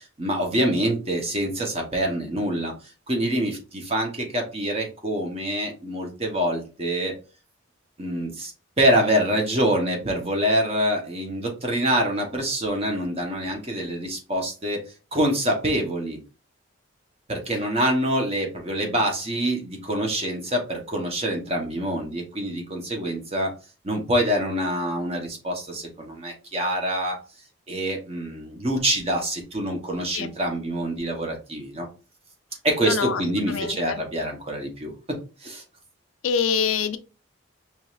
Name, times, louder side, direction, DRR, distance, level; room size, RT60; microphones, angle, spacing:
voice 1, 0.0-2.7 3.1-7.1 8.0-8.5 8.8-14.8 15.1-16.2 17.3-23.5 23.8-27.2 27.7-31.8 32.6-34.9 35.4-35.6, right 1 dB, 30° right, 2 dB, 1.0 m, -25 dB
voice 2, 32.8-33.2 33.5-34.0 36.2-37.0, left 6 dB, 85° left, 10 dB, 0.5 m, -25 dB
5.0 x 3.1 x 2.4 m, 0.33 s
head